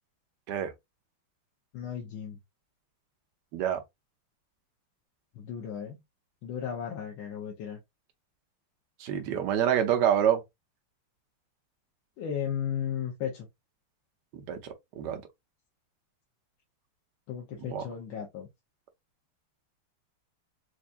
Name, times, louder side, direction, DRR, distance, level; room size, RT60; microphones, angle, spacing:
voice 1, 1.7-2.4 5.3-6.0 6.4-7.8 12.2-13.5 17.3-18.5, left 8 dB, 70° left, 1.5 m, -35 dB
voice 2, 3.5-3.8 9.0-10.4 14.3-14.6 15.0-15.2 17.6-17.8, right 9 dB, 65° right, 1.2 m, -27 dB
4.6 x 2.6 x 2.5 m
omnidirectional pair, 2.4 m